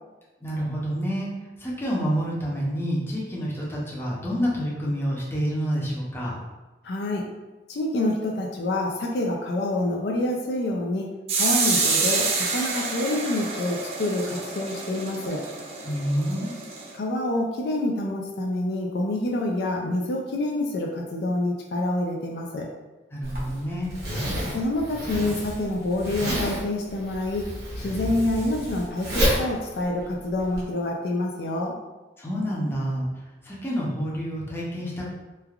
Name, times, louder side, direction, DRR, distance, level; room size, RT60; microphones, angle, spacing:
voice 1, 0.4-1.3 1.6-6.3 15.8-16.5 23.1-23.9 32.2-35.1, equal, 15° left, -6 dB, 0.6 m, -28 dB
voice 2, 6.8-7.2 7.7-11.1 11.3-15.4 17.0-22.7 24.5-27.4 27.8-31.7, left 1 dB, 65° left, 0 dB, 0.4 m, -27 dB
sound 1, 11.3-16.9, right 4 dB, 35° right, 0.4 m, -27 dB
Zipper (clothing), 23.2-30.6, equal, 65° right, 0.9 m, -30 dB
3.2 x 2.3 x 2.3 m, 1.1 s
head